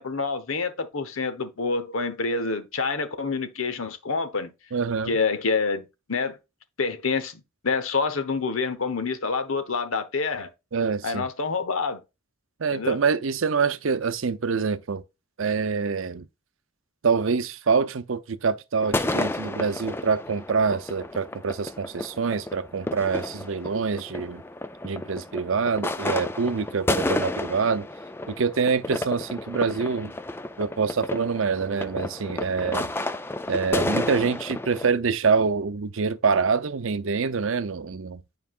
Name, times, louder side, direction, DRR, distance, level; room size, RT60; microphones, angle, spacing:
voice 1, 0.0-4.5 5.1-6.4 6.8-10.5 11.0-12.0 12.7-13.0, left 4 dB, 90° left, 1.1 m, -27 dB
voice 2, 4.7-5.2 10.7-11.3 12.6-15.0 15.4-16.3 17.0-24.4 24.8-27.9 28.3-30.1 30.6-32.9 33.5-38.2, right 5 dB, 75° right, 0.6 m, -25 dB
sound 1, 18.8-34.9, left 2 dB, 10° left, 0.3 m, -31 dB
9.5 x 4.7 x 2.4 m
head